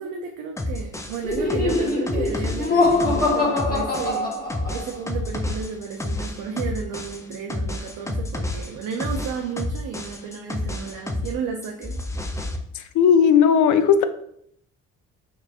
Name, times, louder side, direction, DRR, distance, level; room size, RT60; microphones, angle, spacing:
voice 1, 0.0-4.3 4.7-12.0, right 6 dB, 75° right, 2 dB, 0.6 m, -33 dB
sound 1, 0.6-11.4 11.6-12.6, left 2 dB, 10° left, 0.4 m, -30 dB
Laughter, 1.2-5.0, left 3 dB, 25° left, 1.4 m, -23 dB
voice 2, 12.7-14.0, left 7 dB, 65° left, 10 dB, 0.5 m, -16 dB
4.3 x 3.0 x 2.4 m, 0.69 s
supercardioid pair, 70°, 33 cm